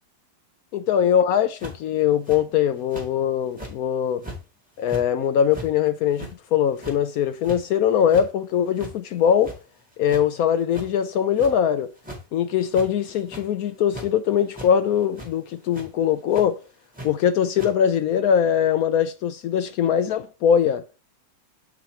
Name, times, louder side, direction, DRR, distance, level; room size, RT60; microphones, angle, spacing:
voice 1, 0.7-4.2 4.8-9.6 10.0-11.9 12.3-16.6 17.0-20.8, left 8 dB, 75° left, 0.8 m, -21 dB
sound 1, 1.6-1.9 2.3-2.4 2.9-3.1 3.5-3.8 4.2-4.4 4.8-5.0 5.5-5.7 6.1-6.3 6.7-7.0 7.4-7.6 8.0-8.3 8.8-8.9 9.3-9.8 10.1-10.2 10.7-10.9 11.4-11.5 12.0-12.2 12.6-12.9 13.2-13.5 13.9-14.1 14.5-14.7 15.1-15.3 15.7-15.9 16.3-16.4 16.9-17.1 17.6-17.7, right 1 dB, 5° right, 2.1 m, -37 dB
8.3 x 4.2 x 4.4 m
omnidirectional pair, 2.0 m